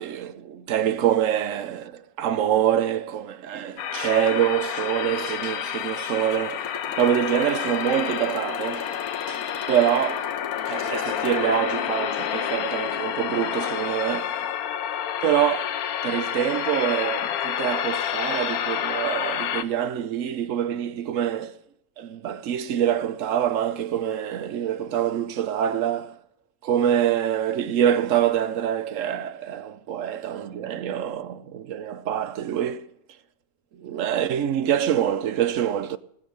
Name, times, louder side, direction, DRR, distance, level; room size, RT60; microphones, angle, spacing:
voice 1, 0.0-10.3 10.7-14.4 15.2-15.8 16.0-21.5 22.0-26.2 26.6-32.9 33.8-36.0, right 10 dB, 65° right, 1.0 m, -25 dB
sound 1, 3.8-19.6, left 9 dB, 75° left, 1.3 m, -29 dB
Motorcycle, 5.7-11.6, left 5 dB, 60° left, 1.6 m, -40 dB
18.5 x 6.5 x 7.5 m
omnidirectional pair, 1.6 m